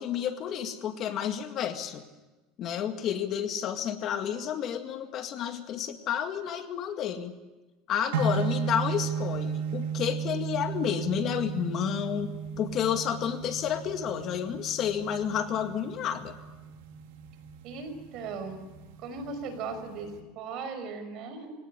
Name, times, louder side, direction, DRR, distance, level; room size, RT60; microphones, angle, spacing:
voice 1, 0.0-2.0 2.6-7.3 7.9-12.3 12.6-16.4, left 9 dB, 40° left, 7 dB, 2.0 m, -30 dB
sound 1, 8.1-20.2, right 6 dB, 85° right, 2.8 m, -35 dB
voice 2, 17.6-18.6 19.0-21.5, right 4 dB, 50° right, 8 dB, 5.5 m, -38 dB
24.5 x 17.5 x 10.0 m, 1.2 s
supercardioid pair, 140°, 0 cm